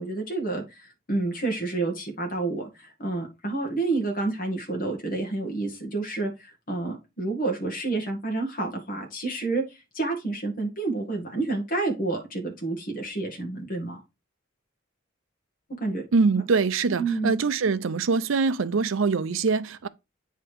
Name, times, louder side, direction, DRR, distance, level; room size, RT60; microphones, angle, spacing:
voice 1, 0.0-14.0 15.8-16.0 17.0-17.4, right 3 dB, 40° left, 1.9 m, -29 dB
voice 2, 16.1-19.9, right 4 dB, 70° right, 0.5 m, -23 dB
8.8 x 3.4 x 4.6 m
head